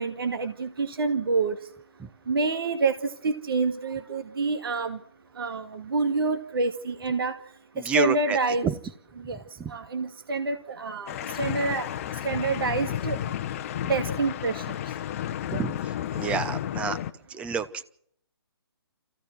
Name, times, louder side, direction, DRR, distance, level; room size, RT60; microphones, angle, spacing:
voice 1, 0.0-1.6 2.3-5.0 5.4-7.4 7.8-8.7 9.2-9.4 9.7-11.9 12.2-13.2 13.9-14.7, right 3 dB, 60° right, 6 dB, 2.2 m, -27 dB
voice 2, 7.8-8.4 8.6-8.7 9.6-9.7 15.5-15.8 16.1-17.0 17.3-17.8, right 7 dB, 10° right, 13 dB, 0.9 m, -28 dB
sound 1, 11.1-17.1, left 11 dB, 35° left, 0.9 m, -32 dB
27.5 x 16.0 x 6.2 m, 0.67 s
figure-of-eight pair, 145°, 13 cm